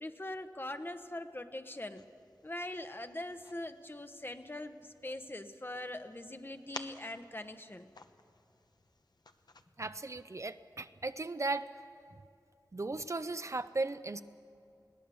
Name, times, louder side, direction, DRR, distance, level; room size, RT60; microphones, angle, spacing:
voice 1, 0.0-2.0 2.4-7.9, left 1 dB, 30° left, 8 dB, 1.0 m, -42 dB
sound 1, 1.9-9.6, left 3 dB, 70° left, 0.9 m, -54 dB
voice 2, 9.8-11.7 12.7-14.2, right 3 dB, 45° right, 11 dB, 0.6 m, -36 dB
21.5 x 17.5 x 7.0 m, 2.5 s
wide cardioid pair, 60°, 7 cm